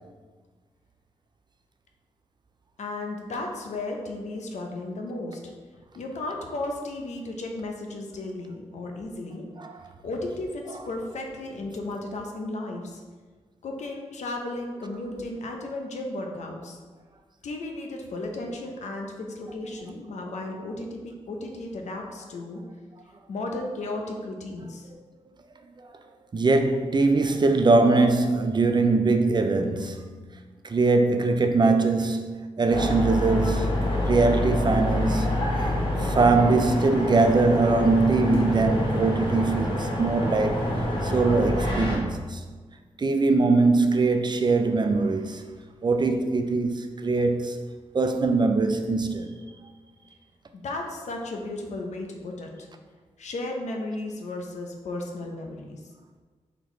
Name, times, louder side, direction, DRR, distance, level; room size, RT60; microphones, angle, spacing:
voice 1, 2.8-5.5 5.9-9.5 10.0-13.0 13.6-16.8 17.4-22.6 23.3-24.9 50.5-52.7 53.2-55.8, left 2 dB, 70° left, 0.6 m, -34 dB
voice 2, 26.3-30.3 30.6-35.3 36.0-40.7 41.0-42.4 43.0-45.4 45.8-47.6 47.9-49.3, right 3 dB, 35° right, 0.4 m, -22 dB
sound 1, 32.7-42.0, left 1 dB, 45° left, 1.0 m, -26 dB
4.0 x 2.9 x 3.1 m
cardioid pair, 50°, 12 cm